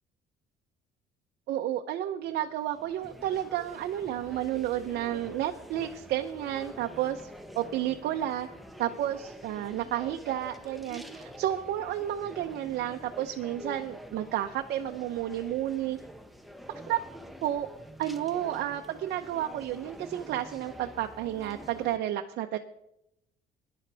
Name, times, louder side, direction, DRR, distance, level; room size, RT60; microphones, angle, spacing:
voice 1, 1.5-7.3 7.6-8.5 8.8-16.0 16.9-17.0 17.4-17.7 18.0-22.6, right 12 dB, 75° right, 4 dB, 0.8 m, -31 dB
sound 1, 2.2-22.0, equal, ahead, 1.0 m, -47 dB
19.5 x 11.0 x 3.5 m, 0.81 s
cardioid pair, 110°, 17 cm